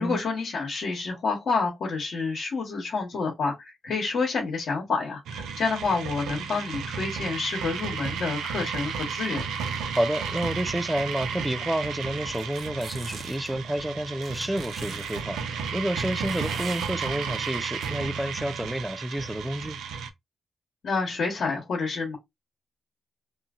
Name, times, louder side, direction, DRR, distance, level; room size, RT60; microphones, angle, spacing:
voice 1, 0.0-9.4 20.8-22.2, left 4 dB, 70° left, 1.2 m, -28 dB
sound 1, 5.3-20.1, right 6 dB, 90° right, 0.5 m, -33 dB
voice 2, 10.0-19.8, right 1 dB, 10° right, 0.4 m, -30 dB
sound 2, 12.3-13.5 14.2-15.2 16.2-16.9 17.8-17.9, right 4 dB, 55° right, 0.7 m, -42 dB
2.8 x 2.5 x 2.4 m
cardioid pair, 60°, 0 cm